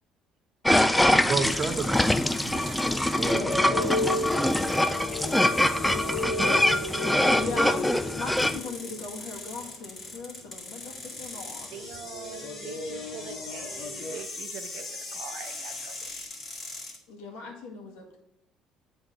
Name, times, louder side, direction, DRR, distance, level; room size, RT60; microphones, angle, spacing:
sound 1, 0.6-8.6, left 1 dB, 5° left, 0.3 m, -24 dB
voice 1, 1.2-3.9, right 4 dB, 35° right, 6 dB, 0.9 m, -33 dB
sound 2, 1.5-17.0, left 3 dB, 30° left, 1.9 m, -41 dB
sound 3, 3.3-10.5 10.8-14.2, left 3 dB, 50° left, 0.9 m, -34 dB
voice 2, 5.0-6.9 11.7-16.1, right 8 dB, 80° right, 7 dB, 0.8 m, -44 dB
voice 3, 7.4-11.7 17.1-18.2, left 4 dB, 85° left, 0 dB, 1.8 m, -39 dB
8.0 x 3.9 x 5.0 m, 0.77 s
cardioid pair, 110°, 0 cm